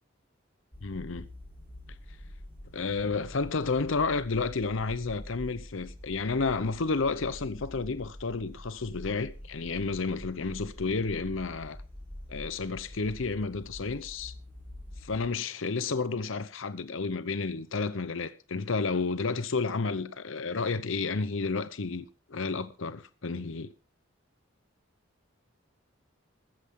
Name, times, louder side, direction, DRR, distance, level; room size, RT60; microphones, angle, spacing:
sound 1, 0.7-15.3, left 1 dB, 10° left, 4.3 m, -46 dB
voice 1, 0.8-1.3 2.7-11.8 12.3-14.3 15.0-23.7, left 4 dB, 70° left, 0.8 m, -31 dB
15.0 x 14.0 x 3.7 m
head